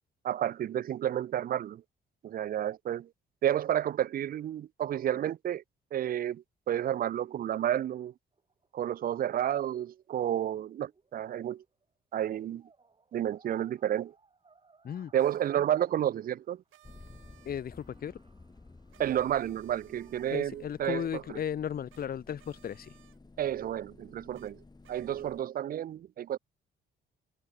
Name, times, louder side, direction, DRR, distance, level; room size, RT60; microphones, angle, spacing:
voice 1, 0.2-1.8 2.2-3.1 3.4-5.6 5.9-8.1 8.7-11.6 12.1-12.6 13.1-14.1 15.1-16.6 19.0-21.4 23.4-24.6 24.9-26.4, right 11 dB, 45° right, 0.4 m, -31 dB
sound 1, 8.3-11.9 12.2-16.7 17.2-17.3 17.5-20.3, right 4 dB, 25° right, 2.6 m, -66 dB
sound 2, 15.2-15.6 16.7-18.1 18.9-20.9 21.9-22.1 22.4-23.2 24.3-24.5 24.8-25.5, right 14 dB, 80° right, 1.8 m, -63 dB
sound 3, 16.8-25.4, left 3 dB, 20° left, 5.4 m, -54 dB
voice 2, 17.4-18.2 20.3-22.9, left 9 dB, 50° left, 1.0 m, -35 dB
cardioid pair, 90°, 20 cm